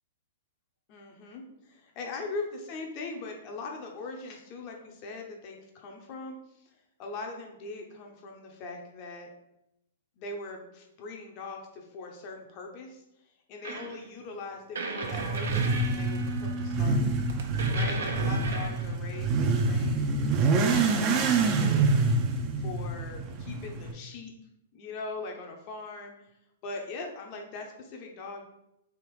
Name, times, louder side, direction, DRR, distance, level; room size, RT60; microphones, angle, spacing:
voice 1, 0.9-6.4 6.6-6.7 7.0-9.3 10.2-13.0 13.5-17.1 17.7-22.0 22.6-24.3 24.7-26.1 26.6-28.4, left 3 dB, 40° left, 2 dB, 0.8 m, -41 dB
sound 1, 13.6-14.0 14.8-18.9, right 2 dB, 70° right, 0.8 m, -35 dB
Motorcycle / Accelerating revving vroom, 15.0-23.9, right 3 dB, 35° right, 0.6 m, -26 dB
3.6 x 2.9 x 4.7 m, 0.85 s
figure-of-eight pair, 110°, 0 cm